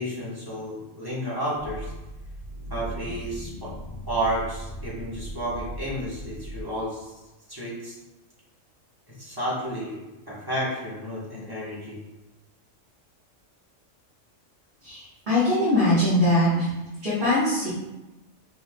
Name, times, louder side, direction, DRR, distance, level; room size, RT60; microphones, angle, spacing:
voice 1, 0.0-1.9 2.7-3.7 4.1-7.2 7.5-8.0 9.2-10.0 10.3-12.0, right 1 dB, 20° right, -8 dB, 1.6 m, -31 dB
sound 1, 1.6-6.6, right 1 dB, 40° left, 0.5 m, -38 dB
voice 2, 14.8-16.7 17.0-17.7, left 1 dB, 40° right, -11 dB, 1.6 m, -22 dB
5.6 x 4.0 x 2.4 m, 1.0 s
omnidirectional pair, 1.3 m